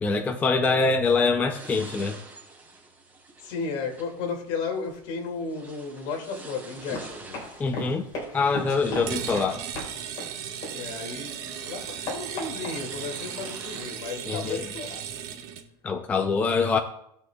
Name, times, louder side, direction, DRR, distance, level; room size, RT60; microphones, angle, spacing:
voice 1, 0.0-2.2 7.6-8.0 8.3-9.6 14.3-14.6 15.8-16.8, left 4 dB, 15° left, 0.5 m, -24 dB
voice 2, 0.6-1.0 3.4-7.4 10.7-15.1, left 4 dB, 60° left, 2.2 m, -34 dB
sound 1, 1.5-14.5, right 3 dB, 15° right, 3.7 m, -48 dB
Run, 6.8-11.2 11.6-13.5, left 2 dB, 35° left, 3.9 m, -37 dB
sound 2, 9.0-15.7, right 9 dB, 55° right, 1.3 m, -36 dB
19.0 x 6.4 x 2.3 m
cardioid pair, 165°, 12 cm